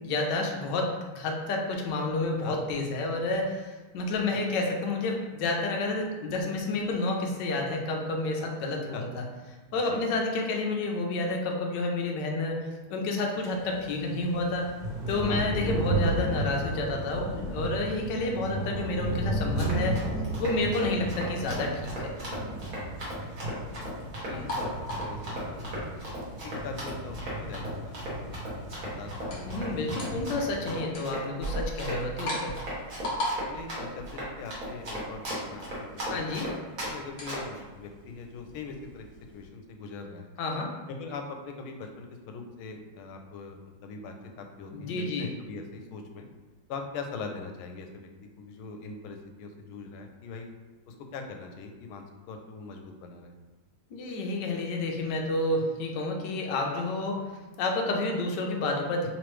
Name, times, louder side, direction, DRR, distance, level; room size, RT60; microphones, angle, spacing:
voice 1, 0.0-9.2 9.7-12.6 12.9-14.7 15.1-20.0 20.4-22.1 24.3-24.5 29.4-32.6 36.1-36.5 40.4-40.7 44.7-45.3 53.9-57.3 57.6-59.1, left 2 dB, 70° left, 1 dB, 1.1 m, -30 dB
voice 2, 9.7-10.0 15.3-15.4 20.4-20.7 23.4-23.5 24.3-25.2 25.5-29.8 33.5-35.7 35.9-36.5 36.9-39.1 39.3-40.3 40.9-46.2 46.7-48.1 48.4-50.5 50.9-53.4, left 4 dB, 85° left, 4 dB, 1.4 m, -42 dB
sound 1, 13.4-30.8, right 2 dB, 75° right, 0.8 m, -34 dB
Run, 19.4-36.9 37.3-37.6, right 1 dB, 50° right, 1.5 m, -37 dB
sound 2, 24.3-39.5, equal, 55° left, 0.8 m, -40 dB
3.6 x 3.1 x 3.1 m, 1.3 s
omnidirectional pair, 2.2 m